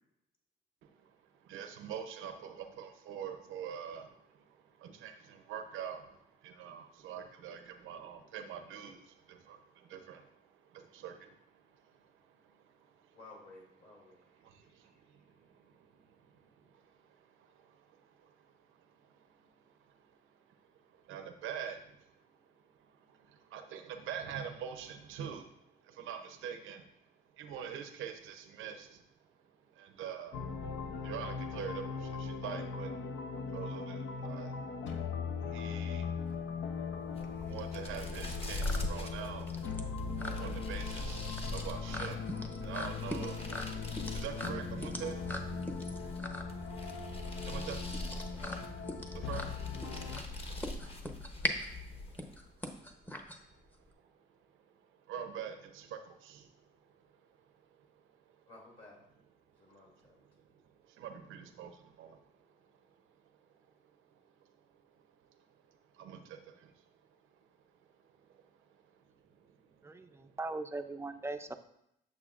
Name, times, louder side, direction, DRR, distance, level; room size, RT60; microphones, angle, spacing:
voice 1, 0.8-13.2 14.1-19.4 19.9-20.0 20.5-20.6 20.9-22.2 22.8-26.9 27.4-29.0 29.7-30.4 31.0-32.9 33.5-34.6 35.5-36.1 37.4-39.6 40.4-42.3 42.6-43.5 44.1-45.2 47.4-47.9 49.1-49.6 50.0-50.5 51.1-51.2 52.1-52.2 53.5-53.6 55.1-56.5 60.4-60.5 60.8-62.2 65.7-66.7 68.3-68.4 69.2-69.6 70.0-70.3, right 8 dB, 90° right, 0.7 m, -45 dB
voice 2, 13.1-14.2 58.5-59.0 59.6-60.2, left 2 dB, 45° left, 2.7 m, -55 dB
sound 1, 30.3-50.2, left 5 dB, 70° left, 0.7 m, -40 dB
sound 2, 36.1-53.9, left 1 dB, 10° left, 0.8 m, -42 dB
sound 3, 37.0-52.5, left 2 dB, 30° left, 1.1 m, -42 dB
voice 3, 69.8-71.5, right 2 dB, 15° right, 0.5 m, -40 dB
8.4 x 6.7 x 2.5 m
cardioid pair, 90°, 20 cm